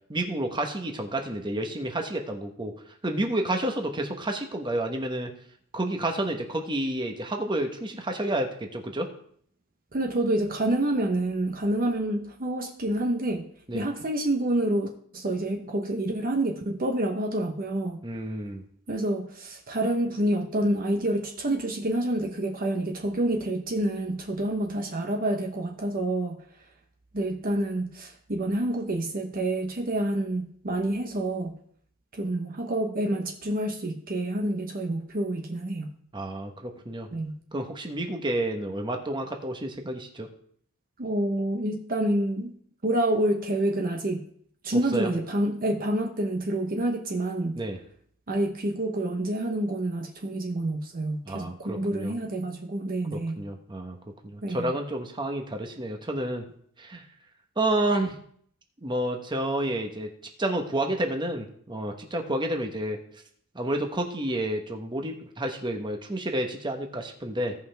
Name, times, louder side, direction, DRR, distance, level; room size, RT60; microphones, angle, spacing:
voice 1, 0.1-2.7 3.0-5.3 5.7-9.1 13.7-13.8 18.0-18.6 36.1-37.1 37.5-40.3 44.9-45.1 47.6-47.8 51.2-52.1 53.1-54.0 54.2-56.4 56.8-57.1 57.6-58.2 58.8-60.1 60.4-63.0 63.5-67.6, right 1 dB, 20° right, 4 dB, 1.1 m, -30 dB
voice 2, 9.9-13.4 13.7-18.0 18.9-26.3 27.1-31.6 32.1-35.9 37.1-37.4 41.0-42.5 42.8-44.2 44.6-47.6 48.3-53.4 54.4-54.7, right 1 dB, 40° right, 3 dB, 0.9 m, -28 dB
16.5 x 5.6 x 3.4 m, 0.63 s
head